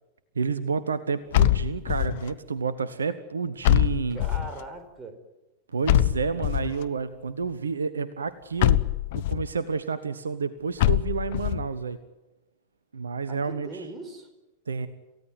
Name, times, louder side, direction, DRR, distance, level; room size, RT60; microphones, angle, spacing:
voice 1, 0.3-4.2 5.7-8.8 9.1-12.0 12.9-13.8 14.7-14.9, right 5 dB, 75° right, 15 dB, 1.1 m, -30 dB
sound 1, 1.3-2.3 3.6-4.6 5.9-6.8 8.6-9.5 10.8-11.6, left 14 dB, 55° left, 0.9 m, -23 dB
voice 2, 4.1-5.2 13.2-14.3, right 2 dB, 20° right, 7 dB, 4.4 m, -40 dB
28.0 x 16.5 x 9.3 m, 1.1 s
figure-of-eight pair, 90°, 0 cm